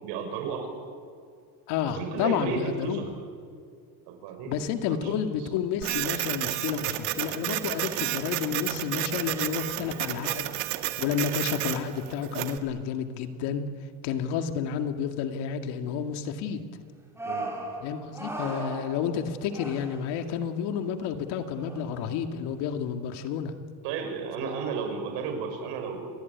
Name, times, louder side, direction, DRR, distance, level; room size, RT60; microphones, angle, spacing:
voice 1, 0.0-0.7 1.9-3.1 4.1-4.6 4.8-5.2 17.2-17.5 23.8-26.1, right 6 dB, 75° right, 5 dB, 6.2 m, -33 dB
voice 2, 1.7-3.0 4.5-10.5 11.0-13.6 14.0-16.6 17.8-23.5 24.4-24.5, left 8 dB, 70° left, 6 dB, 2.3 m, -30 dB
Printer, 5.8-12.6, right 16 dB, 90° right, 1.9 m, -31 dB
sound 1, 11.1-11.3 11.6-11.9 12.6-12.7 17.2-20.5 21.3-22.2, right 2 dB, 5° right, 4.5 m, -38 dB
28.0 x 20.5 x 9.5 m, 2.2 s
cardioid pair, 140°, 42 cm